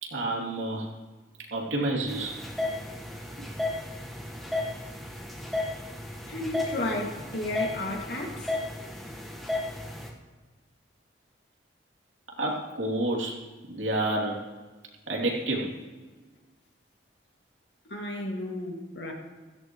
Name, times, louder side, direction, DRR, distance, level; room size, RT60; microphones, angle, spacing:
voice 1, 0.0-0.9 1.5-2.3 3.4-3.5 12.4-13.4 13.7-14.4 15.1-15.8, right 1 dB, 85° right, -1 dB, 2.9 m, -29 dB
sound 1, 2.1-10.1, left 2 dB, ahead, 1.4 m, -34 dB
voice 2, 6.3-8.5 17.9-19.1, left 1 dB, 65° left, 0 dB, 2.3 m, -33 dB
16.0 x 15.0 x 3.1 m, 1.3 s
head